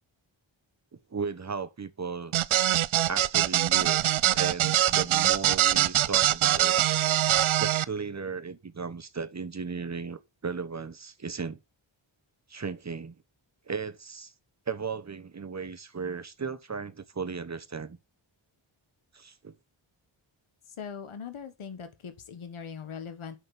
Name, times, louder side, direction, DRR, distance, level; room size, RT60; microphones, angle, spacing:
voice 1, 1.1-2.3 3.1-4.1 4.3-6.7 7.6-11.6 12.5-13.1 13.7-14.3 14.7-18.0 19.1-19.5, right 5 dB, 35° right, 1.2 m, -35 dB
sound 1, 2.3-7.8, right 13 dB, 80° right, 0.6 m, -23 dB
voice 2, 20.8-23.4, left 6 dB, 80° left, 1.6 m, -40 dB
6.4 x 6.2 x 7.5 m
wide cardioid pair, 75°, 48 cm